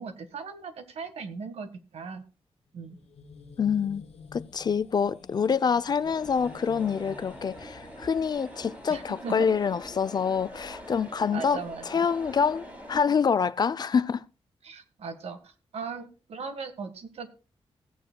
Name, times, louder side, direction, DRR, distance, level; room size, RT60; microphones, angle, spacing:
voice 1, 0.0-2.2 2.7-3.0 8.9-9.5 11.3-12.1 14.6-17.3, right 5 dB, 80° right, 1.6 m, -38 dB
sound 1, 2.7-9.7, left 5 dB, 75° left, 1.2 m, -50 dB
voice 2, 3.6-4.0 4.3-14.2, left 6 dB, 40° left, 0.4 m, -26 dB
sound 2, 6.0-13.0, equal, 15° right, 6.8 m, -44 dB
16.5 x 9.3 x 2.2 m
wide cardioid pair, 135°, 10 cm